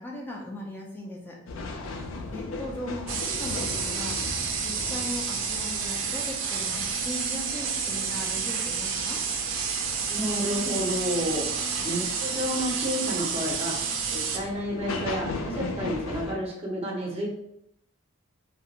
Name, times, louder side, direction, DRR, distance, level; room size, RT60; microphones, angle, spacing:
voice 1, 0.0-1.4 2.3-4.2 4.6-9.2, left 1 dB, 10° left, -2 dB, 0.4 m, -38 dB
sound 1, 1.5-16.3, left 3 dB, 80° left, 0.4 m, -38 dB
sound 2, 3.1-14.4, right 6 dB, 70° right, 0.4 m, -30 dB
voice 2, 10.1-11.4 11.8-13.8 14.1-17.3, equal, 30° right, -3 dB, 0.7 m, -30 dB
2.4 x 2.1 x 2.8 m, 0.78 s
head